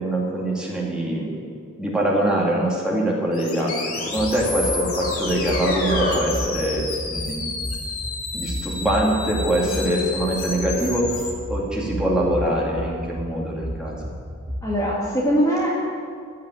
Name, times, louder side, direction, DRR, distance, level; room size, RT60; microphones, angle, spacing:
voice 1, 0.0-1.4 1.8-7.5 8.3-14.0, right 1 dB, 5° right, -5 dB, 2.3 m, -24 dB
sound 1, 3.3-11.3, left 4 dB, 65° left, 2.3 m, -31 dB
sound 2, 3.4-3.5 4.0-6.6, left 2 dB, 45° left, 2.4 m, -29 dB
sound 3, 4.0-14.8, equal, 45° right, 4.0 m, -33 dB
voice 2, 9.7-10.0 14.6-15.7, equal, 15° left, -6 dB, 1.9 m, -22 dB
15.5 x 5.7 x 9.1 m, 2.1 s
head